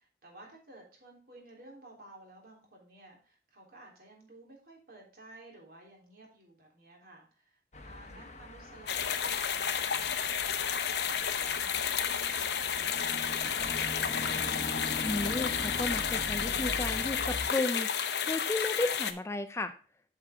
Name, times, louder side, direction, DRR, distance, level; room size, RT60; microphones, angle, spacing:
voice 1, 0.0-14.2, right 2 dB, 55° right, 0 dB, 3.5 m, -54 dB
sound 1, 7.7-17.5, left 1 dB, 40° left, 1.1 m, -41 dB
sound 2, 8.9-19.1, left 7 dB, 65° left, 0.9 m, -31 dB
voice 2, 15.0-17.9 18.3-19.7, left 2 dB, 15° left, 9 dB, 0.5 m, -33 dB
8.0 x 7.4 x 3.6 m, 0.39 s
head